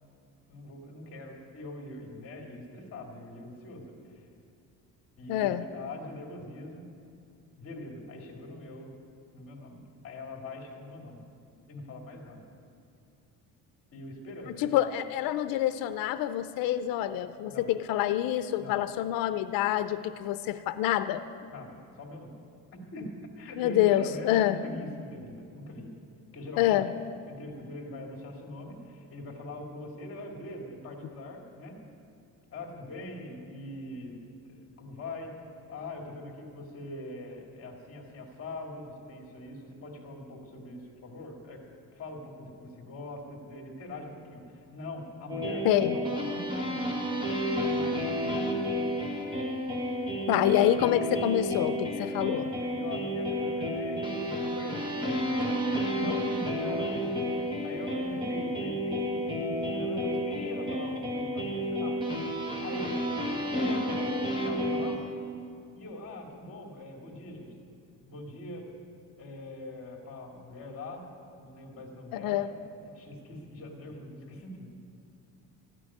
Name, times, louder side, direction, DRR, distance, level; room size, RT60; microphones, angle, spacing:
voice 1, 0.5-4.2 5.2-6.8 7.6-9.0 9.3-11.2 11.7-12.4 13.9-14.7 17.4-17.7 18.6-18.8 21.5-22.4 22.7-25.9 26.3-26.8 27.3-31.8 32.5-35.3 35.7-41.6 41.9-45.7 46.0-46.8 47.7-48.2 52.6-55.2 55.5-62.0 62.6-63.2 63.6-65.1 65.7-67.5 68.0-68.7 69.2-71.0 71.4-72.5 72.9-74.7, left 1 dB, 40° left, 1 dB, 2.3 m, -42 dB
voice 2, 5.3-5.7 14.6-21.2 23.6-24.6 26.6-26.9 45.6-46.0 50.3-52.5 72.1-72.5, left 12 dB, 90° left, 12 dB, 0.6 m, -27 dB
sound 1, 45.3-65.0, equal, 15° right, 1.8 m, -31 dB
13.5 x 6.2 x 9.9 m, 2.4 s
cardioid pair, 140°, 33 cm